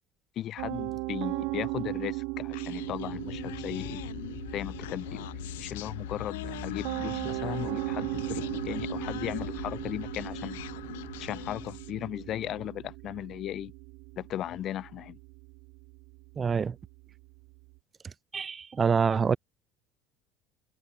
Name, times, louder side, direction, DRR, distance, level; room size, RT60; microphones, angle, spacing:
voice 1, 0.4-4.0 4.5-5.3 5.6-10.6 11.2-13.7 14.2-15.2, left 12 dB, 55° left, 1.9 m, -36 dB
Piano, 0.6-17.7, right 31 dB, 75° right, 0.6 m, -38 dB
Human voice, 2.5-12.0, left 19 dB, 85° left, 3.6 m, -41 dB
voice 2, 16.4-16.8 18.3-19.4, right 6 dB, 30° right, 1.4 m, -26 dB
hypercardioid pair, 80°, 0 cm